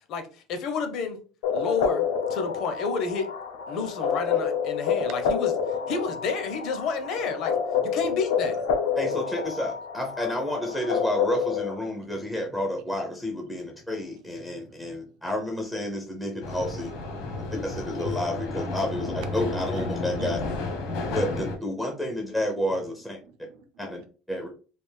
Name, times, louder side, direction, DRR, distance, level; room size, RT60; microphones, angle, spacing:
voice 1, 0.5-1.2 1.5-2.0 2.3-3.3 3.7-5.5 5.9-7.5 7.8-8.6, left 5 dB, 45° left, 0.6 m, -29 dB
sound 1, 1.4-11.7, left 6 dB, 85° left, 0.6 m, -28 dB
voice 2, 9.0-16.9 17.5-20.4 21.1-23.2 23.8-24.0 24.3-24.5, left 1 dB, 5° left, 0.5 m, -30 dB
voice 3, 14.4-15.0 19.2-19.3 23.3-23.6 24.4-24.5, right 6 dB, 55° right, 0.6 m, -50 dB
sound 2, 16.4-21.6, left 2 dB, 65° left, 1.0 m, -31 dB
3.4 x 2.4 x 3.2 m
cardioid pair, 170°, 0 cm